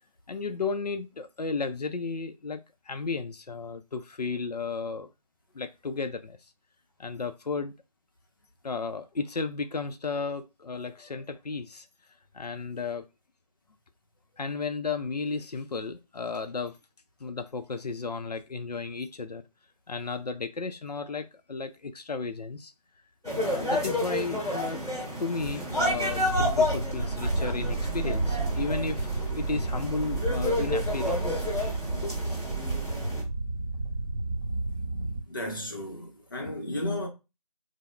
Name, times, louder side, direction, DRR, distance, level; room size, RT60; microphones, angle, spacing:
voice 1, 0.3-5.1 5.5-6.4 7.0-7.7 8.6-11.9 12.3-13.1 14.4-16.8 17.2-19.4 19.9-22.7 23.4-24.8 25.2-31.4 32.0-32.4, left 4 dB, 90° left, 0.5 m, -34 dB
sound 1, 23.2-33.2, left 1 dB, 5° right, 0.7 m, -31 dB
sound 2, 25.4-35.2, right 3 dB, 30° right, 1.6 m, -31 dB
voice 2, 35.0-37.1, left 1 dB, 35° left, 0.7 m, -34 dB
4.7 x 2.0 x 2.2 m
figure-of-eight pair, 165°, 20 cm